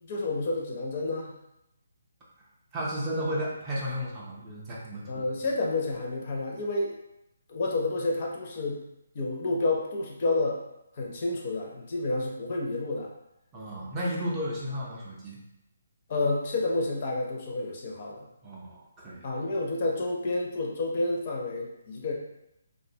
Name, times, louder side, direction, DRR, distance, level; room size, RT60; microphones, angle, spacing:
voice 1, 0.0-1.3 5.1-7.0 7.5-8.8 9.1-10.6 11.0-13.1 16.1-18.2 19.2-22.1, left 2 dB, 40° left, -2 dB, 0.5 m, -29 dB
voice 2, 2.7-5.2 13.5-15.4 18.4-19.3, equal, 15° right, -5 dB, 0.4 m, -33 dB
2.5 x 2.1 x 2.6 m, 0.84 s
hypercardioid pair, 165°, 0 cm